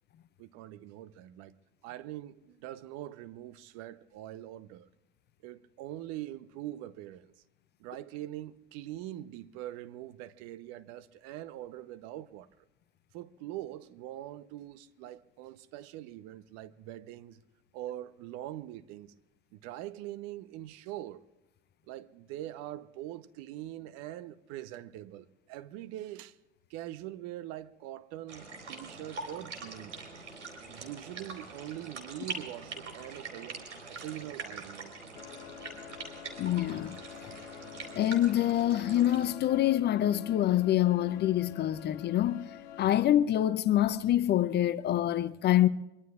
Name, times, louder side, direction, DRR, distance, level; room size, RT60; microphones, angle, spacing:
voice 1, 0.4-1.6 1.8-4.9 5.4-7.3 7.8-12.6 13.1-17.4 17.7-19.1 19.5-21.2 21.9-26.4 26.7-30.0 30.7-34.9, right 13 dB, 45° right, 0.9 m, -43 dB
sound 1, 28.3-39.3, right 3 dB, 85° right, 4.3 m, -44 dB
sound 2, 35.1-43.1, left 11 dB, 65° left, 1.6 m, -47 dB
voice 2, 36.4-37.0 37.2-37.3 37.9-42.5 42.8-45.7, left 12 dB, 30° left, 0.6 m, -26 dB
24.0 x 23.5 x 2.4 m
hypercardioid pair, 85°, 35 cm